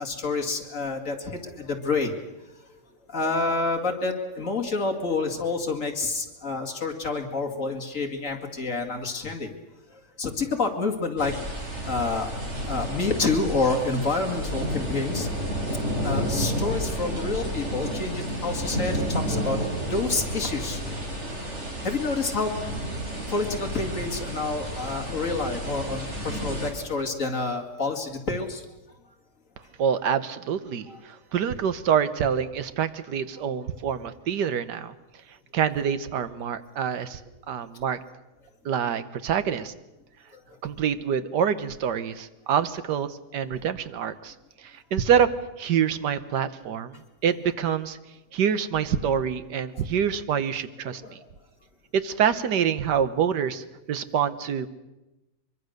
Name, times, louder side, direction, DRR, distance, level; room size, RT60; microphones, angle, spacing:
voice 1, 0.0-2.1 3.1-9.5 9.9-11.3 11.9-12.3 12.7-15.3 16.0-20.8 21.3-21.5 21.8-22.5 23.3-28.7 30.9-31.0 40.3-40.4 51.0-51.2, left 3 dB, 50° left, 4 dB, 2.6 m, -28 dB
sound 1, 11.2-26.7, equal, 40° right, 4.2 m, -31 dB
voice 2, 29.8-34.9 35.5-37.2 37.5-38.0 38.6-39.7 40.6-45.3 45.6-48.0 48.3-51.2 51.9-54.7, right 8 dB, 85° right, 12 dB, 1.7 m, -26 dB
24.0 x 23.0 x 6.6 m, 1.0 s
omnidirectional pair, 1.8 m